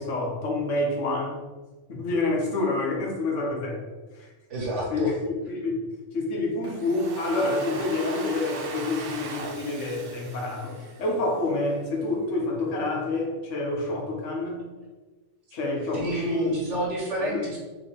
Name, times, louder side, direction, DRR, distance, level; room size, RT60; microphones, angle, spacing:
voice 1, 0.0-1.4 1.9-3.8 4.2-4.3 4.9-5.1 5.5-5.9 6.1-14.6 15.5-16.5 17.2-17.6, left 2 dB, 85° left, 0 dB, 1.2 m, -28 dB
voice 2, 4.5-5.1 15.9-17.6, right 1 dB, 75° right, -3 dB, 1.6 m, -28 dB
Domestic sounds home sounds, 6.6-11.6, right 4 dB, 60° right, 0.7 m, -39 dB
3.7 x 3.3 x 3.8 m, 1.3 s
omnidirectional pair, 1.2 m